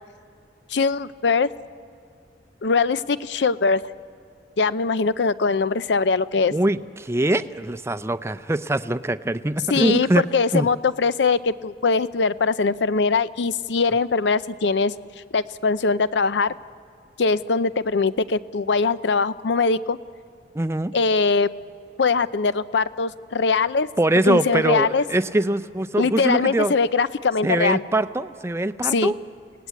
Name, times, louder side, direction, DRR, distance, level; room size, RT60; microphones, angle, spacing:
voice 1, 0.7-1.5 2.6-3.8 4.6-6.5 9.7-14.9 15.3-16.5 17.2-20.0 20.9-21.5 22.0-23.9 24.3-25.0 26.0-27.8 28.9-29.1, left 4 dB, 80° left, 15 dB, 0.6 m, -21 dB
voice 2, 6.5-10.3 10.5-10.7 20.5-20.9 24.0-26.7 27.4-29.1, right 1 dB, 15° right, 12 dB, 0.5 m, -23 dB
30.0 x 18.0 x 8.4 m, 2.4 s
head